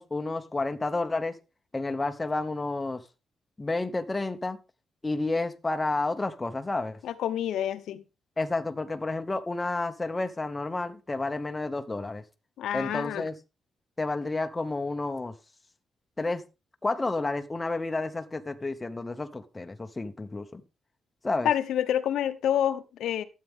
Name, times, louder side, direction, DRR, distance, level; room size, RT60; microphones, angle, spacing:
voice 1, 0.0-1.4 1.7-3.0 3.6-4.6 5.0-7.0 8.4-12.2 12.7-13.3 14.0-15.3 16.2-16.4 16.8-20.6 21.2-21.5, left 2 dB, 15° left, 0.9 m, -30 dB
voice 2, 7.0-8.0 12.6-13.2 21.4-23.2, left 10 dB, 80° left, 0.9 m, -28 dB
12.5 x 8.4 x 3.6 m
cardioid pair, 155°, 0 cm